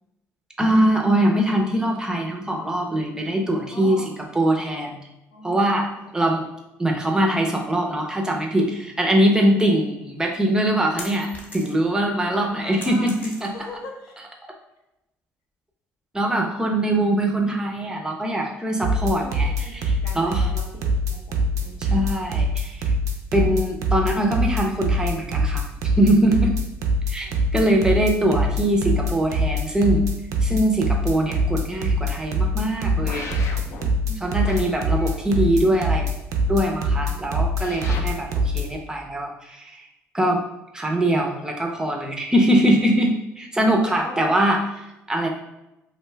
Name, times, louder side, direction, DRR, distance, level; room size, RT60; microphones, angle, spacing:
voice 1, 0.6-4.0 4.3-5.0 5.4-6.4 6.8-13.5 16.1-20.5 21.8-23.0 23.3-26.5 27.1-30.0 30.4-33.3 34.2-36.1 36.5-39.9 40.1-40.4 40.7-45.3, right 1 dB, 10° right, 1 dB, 0.5 m, -22 dB
voice 2, 3.7-4.1 5.3-6.1 9.1-9.3 9.6-9.7 12.3-14.1 18.9-22.1 27.2-27.4 33.8-34.3 37.0-37.2 43.8-44.3, left 2 dB, 90° left, 0 dB, 0.7 m, -40 dB
sound 1, 10.2-12.0 12.3-13.8, left 1 dB, 30° left, 0.8 m, -39 dB
sound 2, 18.8-38.6, equal, 75° right, 0.4 m, -23 dB
sound 3, 33.1-33.9 34.4-35.5 37.6-38.0, left 4 dB, 55° left, 0.4 m, -36 dB
2.5 x 2.2 x 3.2 m, 0.93 s
cardioid pair, 100°, 6 cm